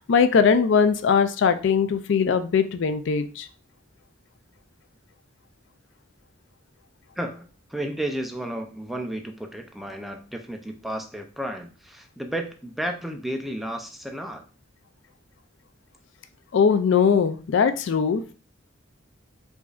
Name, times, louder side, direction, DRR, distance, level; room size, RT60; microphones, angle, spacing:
voice 1, 0.1-3.5 16.5-18.2, left 6 dB, 70° left, 10 dB, 0.4 m, -20 dB
voice 2, 7.2-14.4, right 1 dB, ahead, 3 dB, 0.4 m, -32 dB
4.8 x 2.6 x 2.4 m, 0.37 s
head